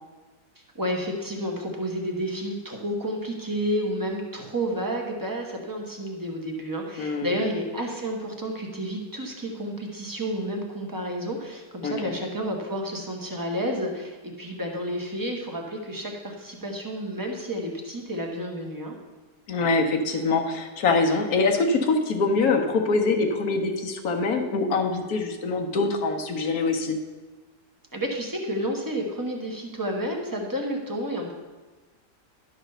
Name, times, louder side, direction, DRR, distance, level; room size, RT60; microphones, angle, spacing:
voice 1, 0.7-19.0 27.9-31.3, equal, 15° right, 1 dB, 1.0 m, -30 dB
voice 2, 7.0-7.4 11.8-12.1 19.5-27.0, left 3 dB, 65° left, 4 dB, 1.3 m, -24 dB
11.5 x 4.0 x 6.6 m, 1.3 s
omnidirectional pair, 1.8 m